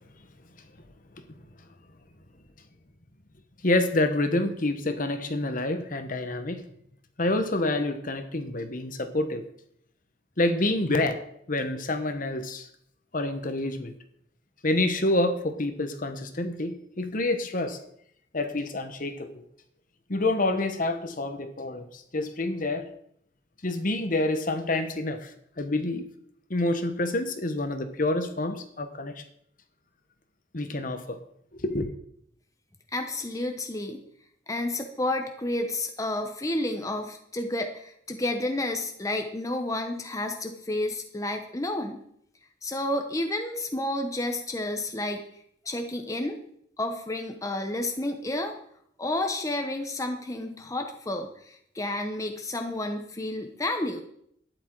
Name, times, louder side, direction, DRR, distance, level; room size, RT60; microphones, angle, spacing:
voice 1, 3.6-6.6 7.2-9.4 10.4-11.2 11.5-12.7 13.1-13.9 14.6-17.8 18.3-19.4 20.1-22.9 23.6-25.3 25.6-26.1 26.5-29.2 30.5-31.2 31.5-31.9, left 2 dB, 45° left, 8 dB, 1.1 m, -27 dB
voice 2, 32.9-34.0 34.5-42.0 42.6-45.3 45.6-46.4 46.8-48.6 49.0-54.0, left 1 dB, 15° left, 5 dB, 0.9 m, -30 dB
12.0 x 10.0 x 4.6 m, 0.69 s
head